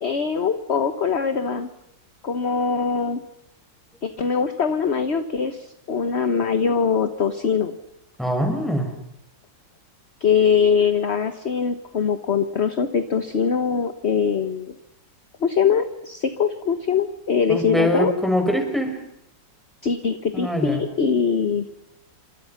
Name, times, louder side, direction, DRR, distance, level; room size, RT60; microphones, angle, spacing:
voice 1, 0.0-1.7 2.2-3.2 4.0-7.8 10.2-14.7 15.4-18.1 19.8-21.6, left 6 dB, 40° left, 9 dB, 1.4 m, -22 dB
voice 2, 8.2-8.9 17.5-19.0 20.3-20.8, equal, ahead, 4 dB, 5.8 m, -23 dB
28.5 x 26.0 x 5.9 m, 0.80 s
omnidirectional pair, 2.0 m